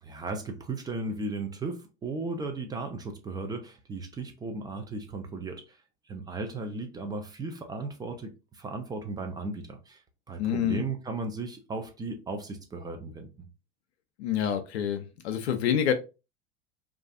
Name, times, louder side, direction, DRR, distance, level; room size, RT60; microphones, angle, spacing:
voice 1, 0.0-5.8 6.1-10.0 10.3-13.5, right 3 dB, 10° right, 0.3 m, -36 dB
voice 2, 10.4-10.8 14.2-15.9, left 9 dB, 70° left, 0.5 m, -27 dB
2.4 x 2.3 x 2.5 m
figure-of-eight pair, 80°, 34 cm